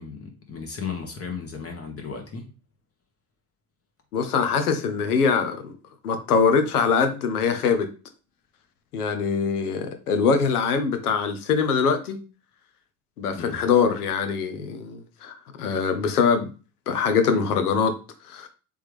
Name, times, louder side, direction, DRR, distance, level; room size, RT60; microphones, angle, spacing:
voice 1, 0.0-2.5 13.3-13.6, left 5 dB, 30° left, 3 dB, 1.1 m, -35 dB
voice 2, 4.1-5.7 6.0-7.9 8.9-12.2 13.2-16.5 16.9-17.9 18.3-18.5, left 5 dB, 90° left, 8 dB, 0.8 m, -23 dB
3.5 x 3.5 x 3.2 m, 0.34 s
hypercardioid pair, 70°, 44 cm